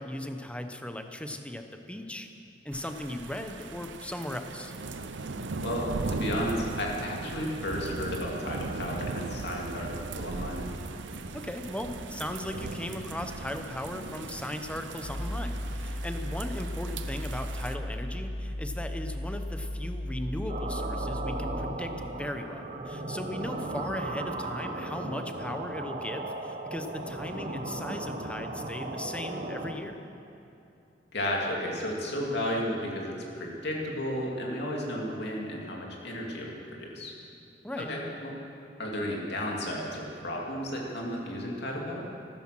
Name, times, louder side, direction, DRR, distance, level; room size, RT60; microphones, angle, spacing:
voice 1, 0.0-2.3 2.6-4.7 11.3-30.0 37.6-37.9, left 1 dB, 5° left, 6 dB, 0.9 m, -37 dB
sound 1, 2.7-17.8, right 3 dB, 85° right, 0.8 m, -38 dB
voice 2, 5.6-10.6 31.1-37.1 37.8-38.4 38.8-42.1, equal, 65° left, -2 dB, 2.7 m, -33 dB
sound 2, 15.0-21.8, left 1 dB, 40° left, 1.0 m, -35 dB
sound 3, 20.5-29.7, right 2 dB, 40° right, 1.0 m, -36 dB
15.0 x 13.5 x 6.2 m, 2.8 s
head